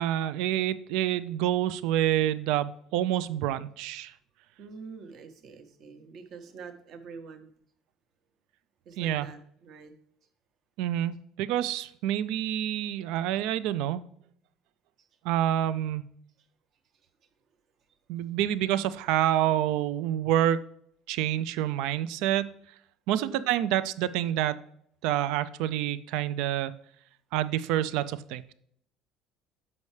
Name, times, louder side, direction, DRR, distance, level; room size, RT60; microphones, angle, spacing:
voice 1, 0.0-4.1 9.0-9.3 10.8-14.0 15.2-16.1 18.1-20.6 21.1-22.5 23.1-24.6 25.0-26.7 27.3-28.5, right 12 dB, 75° right, 15 dB, 0.4 m, -27 dB
voice 2, 4.6-7.5 8.9-9.9 23.1-23.5, right 5 dB, 45° right, 8 dB, 0.9 m, -45 dB
6.9 x 5.3 x 3.2 m, 0.67 s
cardioid pair, 150°, 0 cm